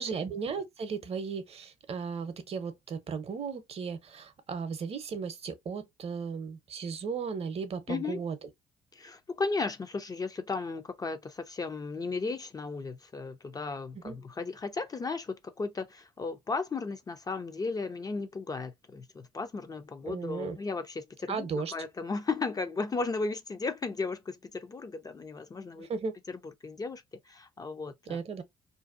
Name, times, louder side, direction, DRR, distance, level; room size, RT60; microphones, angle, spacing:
voice 1, 0.0-8.4 13.9-14.2 20.1-20.6 21.3-21.7 25.8-26.2 28.1-28.4, right 5 dB, 45° right, 0.7 m, -35 dB
voice 2, 7.9-8.2 8.9-25.9 26.3-28.2, left 4 dB, 25° left, 0.4 m, -35 dB
2.5 x 2.2 x 2.4 m
supercardioid pair, 70°, 15 cm